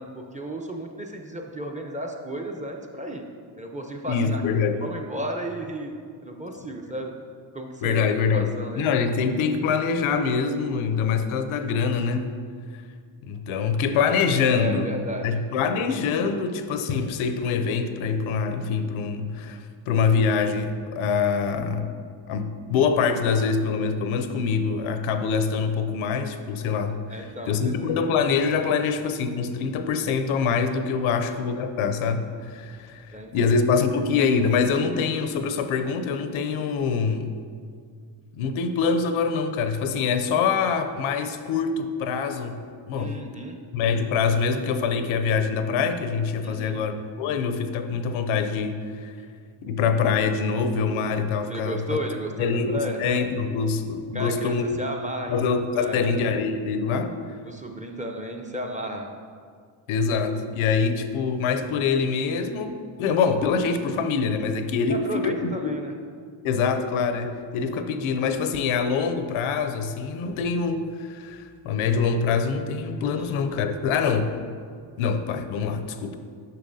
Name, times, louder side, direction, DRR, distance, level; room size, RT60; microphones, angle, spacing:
voice 1, 0.0-3.2 3.6-4.4 4.8-5.9 6.2-7.1 7.5-8.1 8.3-8.9 14.5-15.3 27.1-28.4 31.1-31.4 33.1-33.6 43.0-43.6 46.4-46.8 51.5-53.0 54.1-55.4 55.7-56.2 57.4-59.1 64.9-65.9 73.2-73.4, equal, 15° right, 2 dB, 0.7 m, -34 dB
voice 2, 4.1-4.8 7.8-8.5 8.8-12.3 13.2-14.9 15.2-19.6 19.9-21.9 22.3-37.4 38.4-42.6 42.9-43.2 43.7-49.1 49.6-52.0 52.4-54.7 55.3-57.1 59.9-65.7 66.4-74.3 75.0-76.2, left 5 dB, 75° left, 8 dB, 0.6 m, -25 dB
6.5 x 5.6 x 2.7 m, 2.1 s
supercardioid pair, 60°, 50 cm